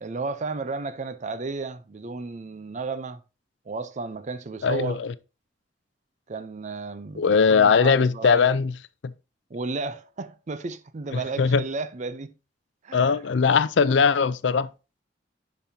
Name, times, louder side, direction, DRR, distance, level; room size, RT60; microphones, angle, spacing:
voice 1, 0.0-3.2 3.7-5.0 6.3-8.5 9.5-12.3 12.8-13.2, right 3 dB, 40° right, 0.5 m, -33 dB
voice 2, 4.6-5.1 7.2-8.7 9.0-9.1 11.4-11.6 12.9-14.7, left 5 dB, 70° left, 0.4 m, -20 dB
10.0 x 5.4 x 2.7 m
head